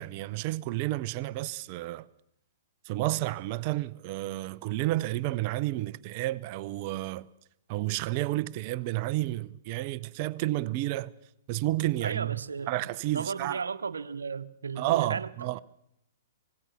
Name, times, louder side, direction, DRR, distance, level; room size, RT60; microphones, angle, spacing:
voice 1, 0.0-2.1 2.8-7.3 7.7-11.1 11.5-12.4 12.7-13.6 14.8-15.6, right 17 dB, 40° right, 0.8 m, -31 dB
voice 2, 12.0-12.7 13.1-15.3, right 5 dB, 80° right, 1.1 m, -35 dB
25.5 x 19.5 x 6.0 m
hypercardioid pair, 120°, 0 cm